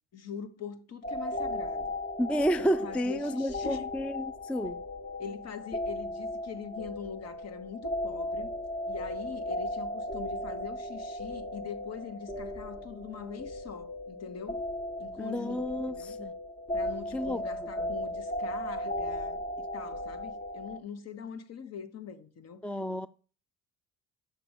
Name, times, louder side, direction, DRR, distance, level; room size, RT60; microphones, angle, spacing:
voice 1, 0.1-2.0 2.6-3.9 5.2-8.5 8.9-14.6 15.0-16.2 16.7-19.4 19.7-22.7, left 6 dB, 50° left, 1.4 m, -43 dB
sound 1, 1.0-20.8, left 1 dB, 30° left, 1.5 m, -36 dB
voice 2, 2.2-4.8 15.2-16.3 17.1-17.4 22.6-23.1, equal, 5° left, 0.4 m, -31 dB
6.8 x 6.0 x 7.4 m
supercardioid pair, 85°, 33 cm